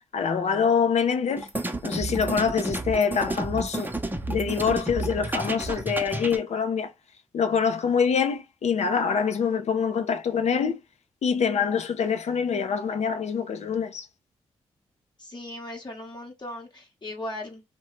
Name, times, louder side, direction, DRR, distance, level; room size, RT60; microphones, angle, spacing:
voice 1, 0.1-1.5 1.8-3.9 4.3-6.9 7.3-10.8 11.2-14.1, left 6 dB, 60° left, 0.6 m, -25 dB
sound 1, 1.4-6.4, right 2 dB, 15° right, 0.8 m, -31 dB
voice 2, 15.2-17.6, left 1 dB, 35° left, 1.1 m, -38 dB
2.7 x 2.3 x 3.0 m
hypercardioid pair, 40°, 13 cm